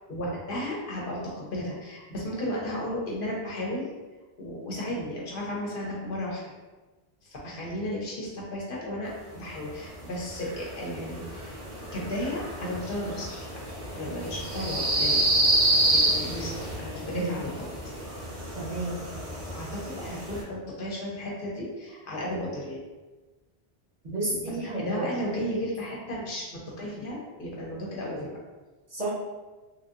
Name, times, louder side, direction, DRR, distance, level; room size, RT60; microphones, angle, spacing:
voice 1, 0.1-3.9 4.4-6.4 7.2-11.6 11.9-13.5 13.9-15.2 15.9-17.7 19.4-22.8 24.3-28.4, left 1 dB, 60° left, -4 dB, 0.8 m, -34 dB
sound 1, 9.6-20.4, right 1 dB, 90° right, 1.3 m, -29 dB
voice 2, 18.5-19.0 24.0-25.1 28.9-29.1, right 2 dB, 45° right, -7 dB, 0.9 m, -31 dB
3.2 x 2.6 x 2.5 m, 1.2 s
omnidirectional pair, 1.1 m